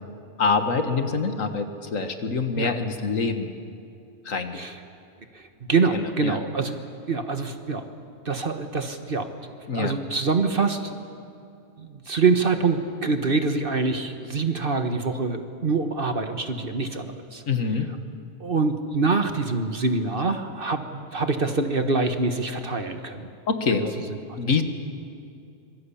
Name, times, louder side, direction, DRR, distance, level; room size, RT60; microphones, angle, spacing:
voice 1, 0.4-3.5 4.3-4.7 5.9-6.4 9.7-9.9 17.5-17.9 23.5-24.1 24.4-24.6, left 4 dB, 70° left, 7 dB, 2.0 m, -25 dB
voice 2, 5.3-6.8 7.1-7.9 8.2-9.3 9.7-11.0 11.8-17.4 18.4-23.3 23.7-23.8 24.2-24.4, right 4 dB, 45° right, 7 dB, 1.6 m, -25 dB
25.5 x 23.5 x 8.6 m, 2.5 s
omnidirectional pair, 1.4 m